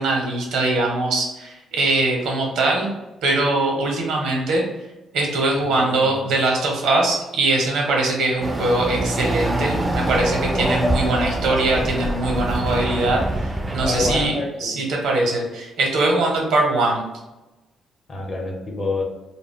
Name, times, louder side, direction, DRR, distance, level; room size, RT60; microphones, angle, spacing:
voice 1, 0.0-2.9 3.2-4.6 5.1-14.3 14.6-17.0, right 2 dB, 85° right, 0 dB, 0.7 m, -21 dB
voice 2, 5.8-6.3 13.8-14.8 18.1-19.0, left 2 dB, 40° left, 0 dB, 0.7 m, -27 dB
Chatter / Car passing by / Motorcycle, 8.4-14.3, right 1 dB, 15° right, 0.3 m, -24 dB
2.2 x 2.0 x 3.5 m, 1.0 s
cardioid pair, 90°, 0 cm